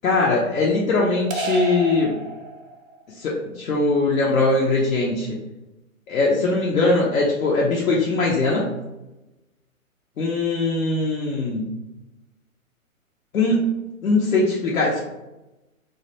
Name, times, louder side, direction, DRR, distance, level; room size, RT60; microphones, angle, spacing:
voice 1, 0.0-2.1 3.2-5.4 6.1-8.7 10.2-11.7 13.3-13.7 14.0-15.0, left 2 dB, 75° left, -4 dB, 0.6 m, -21 dB
sound 1, 1.3-3.0, right 2 dB, 70° right, 0.7 m, -30 dB
2.2 x 2.1 x 2.8 m, 0.98 s
figure-of-eight pair, 125°, 42 cm